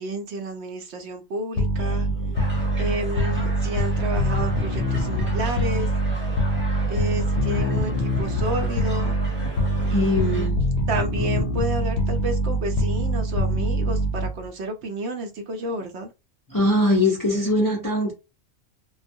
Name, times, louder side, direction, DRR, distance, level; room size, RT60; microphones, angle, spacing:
voice 1, 0.0-2.1 2.8-5.9 6.9-9.2 9.9-10.5 10.9-16.1, right 1 dB, 65° right, 0.8 m, -31 dB
sound 1, 1.6-14.5, right 1 dB, 65° left, 0.8 m, -24 dB
voice 2, 1.8-2.4 9.3-10.6 16.5-18.1, left 1 dB, 30° left, 0.4 m, -23 dB
sound 2, 2.3-10.5, equal, 10° right, 0.7 m, -39 dB
2.2 x 2.1 x 2.6 m
omnidirectional pair, 1.3 m